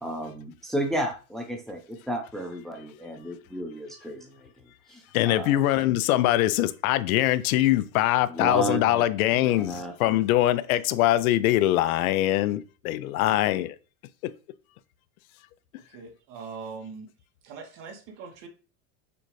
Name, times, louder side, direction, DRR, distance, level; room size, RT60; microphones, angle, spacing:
voice 1, 0.0-4.5 4.9-5.5 8.3-10.2, right 1 dB, ahead, 0.8 m, -33 dB
voice 2, 5.1-13.8 14.2-14.3, left 14 dB, 75° left, 0.6 m, -23 dB
voice 3, 15.9-17.1 17.4-18.5, right 5 dB, 55° right, 1.5 m, -41 dB
6.9 x 2.4 x 3.1 m
hypercardioid pair, 105°, 43 cm